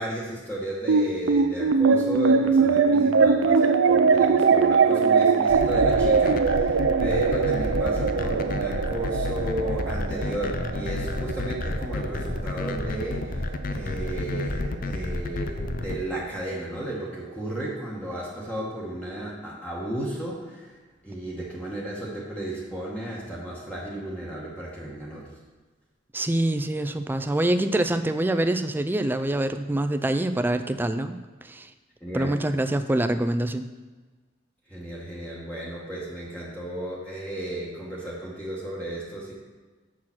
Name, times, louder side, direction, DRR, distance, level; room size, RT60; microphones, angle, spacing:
voice 1, 0.0-20.8 21.0-25.3 32.0-32.4 34.7-39.4, right 1 dB, 5° left, -5 dB, 1.3 m, -34 dB
sound 1, 0.9-13.5, right 5 dB, 80° right, 0.5 m, -22 dB
sound 2, 5.5-16.0, left 2 dB, 50° left, 0.5 m, -30 dB
voice 2, 26.1-31.7 32.1-33.7, right 1 dB, 10° right, 9 dB, 0.3 m, -25 dB
6.6 x 5.7 x 6.0 m, 1.3 s
head